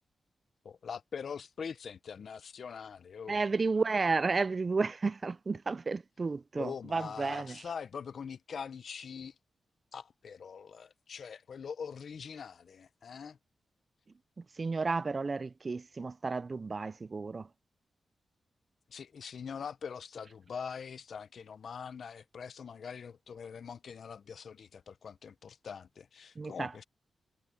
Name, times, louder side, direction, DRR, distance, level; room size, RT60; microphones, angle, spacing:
voice 1, 0.6-3.4 6.5-9.3 9.9-13.4 18.9-26.8, left 6 dB, 70° left, 0.7 m, -43 dB
voice 2, 3.3-7.6 14.6-17.5 26.4-26.8, right 4 dB, 40° right, 0.4 m, -32 dB
cardioid pair, 70°, 0 cm